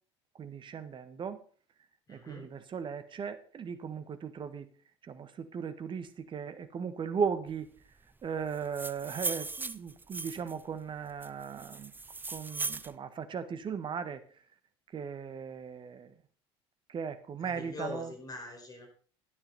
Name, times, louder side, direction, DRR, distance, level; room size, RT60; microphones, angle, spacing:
voice 1, 0.4-1.4 2.1-4.7 5.0-7.7 8.2-11.9 12.3-14.2 14.9-16.1 16.9-18.1, right 6 dB, 35° right, 11 dB, 1.4 m, -37 dB
voice 2, 2.1-2.5 17.4-18.9, left 2 dB, 25° left, 3 dB, 4.8 m, -42 dB
sound 1, 8.5-10.6 11.2-12.9, right 3 dB, 15° right, 0.6 m, -38 dB
12.5 x 10.0 x 4.1 m, 0.43 s
figure-of-eight pair, 65°, 14 cm